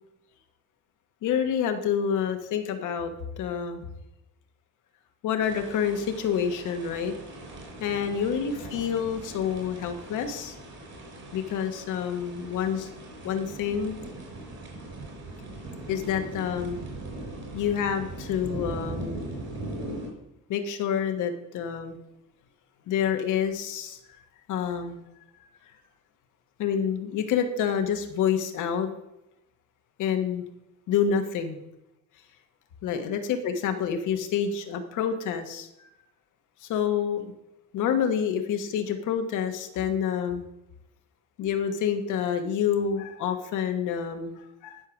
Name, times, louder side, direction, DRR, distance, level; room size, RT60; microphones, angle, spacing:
voice 1, 1.2-3.8 5.2-7.1 7.8-10.6 11.3-12.9 13.2-14.0 15.9-16.8 17.5-19.2 20.5-22.0 22.9-24.0 24.5-25.0 26.6-28.9 30.0-30.4 30.9-31.6 32.8-35.9 36.6-37.3 37.7-40.4 41.4-44.8, left 8 dB, 90° left, 6 dB, 1.3 m, -28 dB
sound 1, 5.4-20.1, right 2 dB, 60° right, 4.2 m, -40 dB
11.5 x 4.9 x 6.2 m, 0.85 s
cardioid pair, 90°, 30 cm